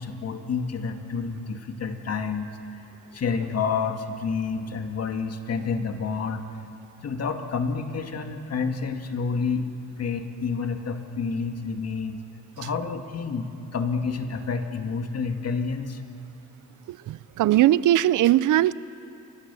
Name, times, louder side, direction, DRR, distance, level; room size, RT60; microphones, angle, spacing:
voice 1, 0.0-2.8 3.1-6.4 7.0-9.6 10.0-12.2 12.6-16.0, left 5 dB, 55° left, 5 dB, 2.1 m, -29 dB
voice 2, 16.9-18.7, right 13 dB, 85° right, 18 dB, 0.6 m, -20 dB
29.5 x 24.5 x 7.0 m, 2.8 s
cardioid pair, 95°, 30 cm